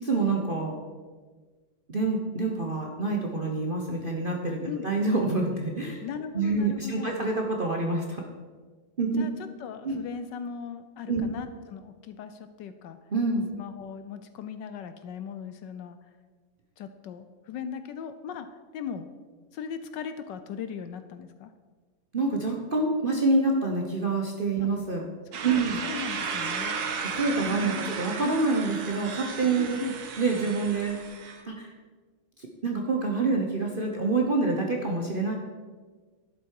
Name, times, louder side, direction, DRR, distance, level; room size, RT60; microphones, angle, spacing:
voice 1, 0.1-0.8 1.9-6.0 6.3-8.2 9.0-9.2 9.8-10.0 11.1-11.3 13.1-13.5 22.1-25.1 25.4-25.8 27.0-29.8 30.2-31.0 31.5-31.7 32.4-35.4, right 3 dB, 40° right, 0 dB, 0.8 m, -27 dB
voice 2, 6.0-7.2 9.1-13.0 13.5-16.0 16.8-18.5 18.7-19.1 19.5-21.5 24.6-24.7 25.3-26.8 27.5-27.9 29.6-29.9, left 7 dB, 75° left, 10 dB, 1.2 m, -38 dB
sound 1, 25.3-31.4, right 5 dB, 55° right, 1.3 m, -34 dB
11.0 x 8.0 x 4.7 m, 1.4 s
omnidirectional pair, 2.2 m